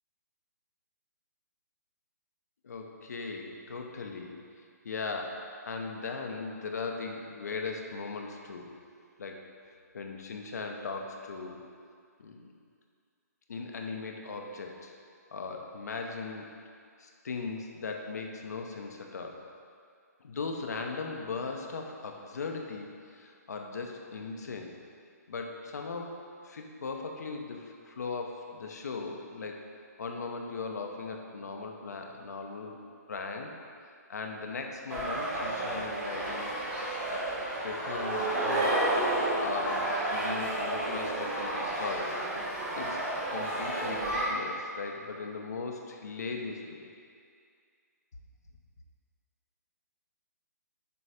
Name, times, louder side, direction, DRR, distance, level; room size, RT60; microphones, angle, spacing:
voice 1, 2.6-4.4 4.8-8.7 9.2-9.5 9.9-11.7 12.2-12.5 13.5-14.9 15.3-16.5 17.0-19.4 20.2-24.7 25.3-29.6 30.0-32.8 33.1-33.5 34.1-36.6 37.1-37.3 37.6-38.9 39.4-42.2 42.8-46.9, left 4 dB, 70° left, 2 dB, 0.7 m, -38 dB
sound 1, 34.9-44.2, right 1 dB, 15° right, 1.1 m, -31 dB
6.9 x 3.2 x 4.8 m, 2.2 s
hypercardioid pair, 140°, 9 cm